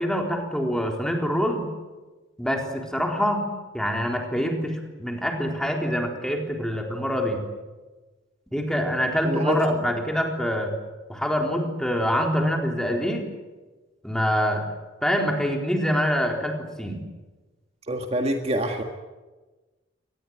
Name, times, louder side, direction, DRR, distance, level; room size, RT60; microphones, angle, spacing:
voice 1, 0.0-1.7 2.4-3.4 3.7-7.4 8.5-10.7 11.1-13.2 14.0-14.6 15.0-17.0, equal, 5° left, 2 dB, 3.9 m, -25 dB
voice 2, 9.2-9.6 17.9-18.8, right 1 dB, 30° right, 4 dB, 1.8 m, -26 dB
24.5 x 19.5 x 9.6 m, 1.2 s
head